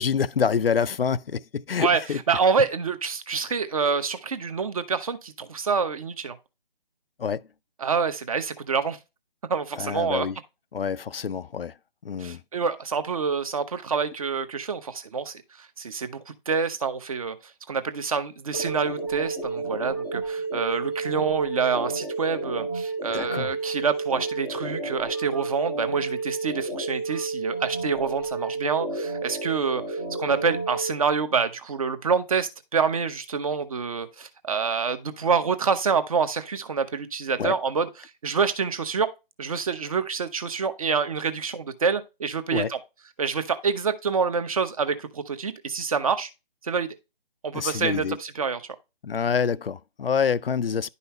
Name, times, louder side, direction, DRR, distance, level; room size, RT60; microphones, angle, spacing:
voice 1, 0.0-2.2 7.2-7.5 9.8-10.4 10.7-11.7 12.0-12.4 23.1-23.5 37.4-37.5 42.5-42.7 47.5-48.2 49.0-50.9, left 6 dB, 70° left, 0.5 m, -26 dB
voice 2, 1.8-6.4 7.8-9.0 9.5-10.3 12.2-15.4 15.8-17.4 17.7-39.1 39.4-42.8 43.2-46.3 46.6-46.9 47.4-48.6, right 5 dB, 35° right, 0.9 m, -27 dB
sound 1, 18.5-30.9, right 3 dB, 5° right, 0.5 m, -31 dB
10.5 x 5.5 x 3.2 m
figure-of-eight pair, 150°, 30 cm